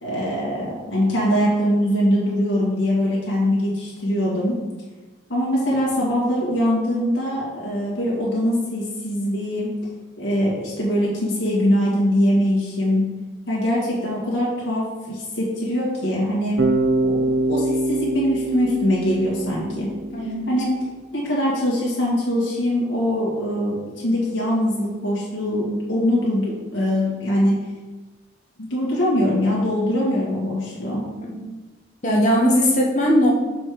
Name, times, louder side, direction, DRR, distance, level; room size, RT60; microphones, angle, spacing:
voice 1, 0.0-4.6 5.3-9.7 10.2-13.0 13.5-16.6 17.0-19.9 20.2-20.7 21.1-27.6 28.6-31.0, equal, 75° left, -5 dB, 1.7 m, -22 dB
Bass guitar, 16.6-20.6, right 1 dB, 80° right, 0.9 m, -24 dB
voice 2, 20.1-20.5 31.2-31.4 32.0-33.3, equal, 40° left, -2 dB, 1.2 m, -19 dB
6.4 x 4.3 x 4.8 m, 1.2 s
head